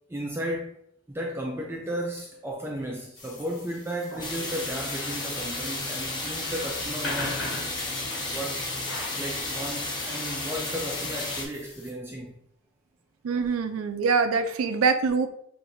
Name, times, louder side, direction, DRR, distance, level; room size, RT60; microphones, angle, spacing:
voice 1, 0.1-0.8 1.1-7.5 8.3-8.6 9.2-12.3, equal, 10° right, 0.4 m, -34 dB
sound 1, 3.2-11.9, left 1 dB, 75° left, 1.6 m, -41 dB
sound 2, 4.2-11.4, left 2 dB, 20° left, 0.8 m, -32 dB
voice 2, 13.2-15.3, right 5 dB, 85° right, 0.4 m, -24 dB
6.3 x 2.6 x 2.6 m
head